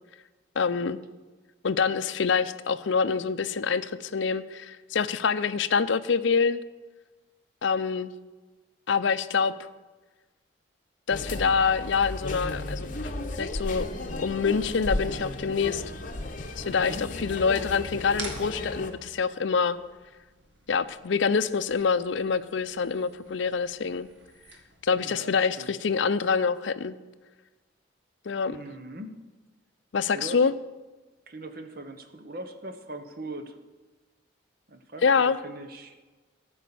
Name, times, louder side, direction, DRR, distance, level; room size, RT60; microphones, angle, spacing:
voice 1, 0.6-1.0 1.6-6.6 7.6-8.1 8.9-9.5 11.1-13.1 13.4-13.9 14.2-15.8 16.6-19.8 20.7-24.1 24.8-27.0 28.3-28.6 29.9-30.5 35.0-35.4, left 5 dB, 70° left, 14 dB, 0.5 m, -26 dB
sound 1, 11.1-18.9, left 1 dB, 40° left, 0.9 m, -34 dB
voice 2, 16.7-17.1 25.0-25.8 28.5-29.2 30.1-30.5 31.3-33.6 34.7-36.0, right 1 dB, 50° right, 7 dB, 1.0 m, -40 dB
sound 2, 18.1-25.1, right 3 dB, 65° right, 1.7 m, -47 dB
14.0 x 5.5 x 6.9 m, 1.3 s
head